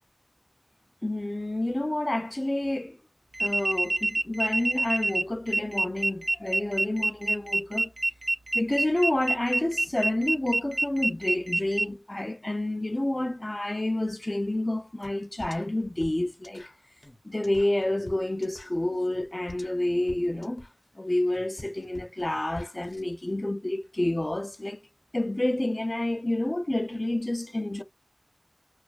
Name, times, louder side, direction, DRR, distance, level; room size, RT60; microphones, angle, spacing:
voice 1, 1.0-3.0 3.4-7.9 8.5-16.6 17.2-20.6 21.0-24.8 25.1-27.8, left 1 dB, 45° left, 0.3 m, -29 dB
sound 1, 3.3-11.9, right 2 dB, 60° right, 0.5 m, -27 dB
sound 2, 15.0-15.1 15.4-23.0, left 1 dB, 80° left, 0.7 m, -48 dB
2.5 x 2.2 x 2.2 m
wide cardioid pair, 40°, 0 cm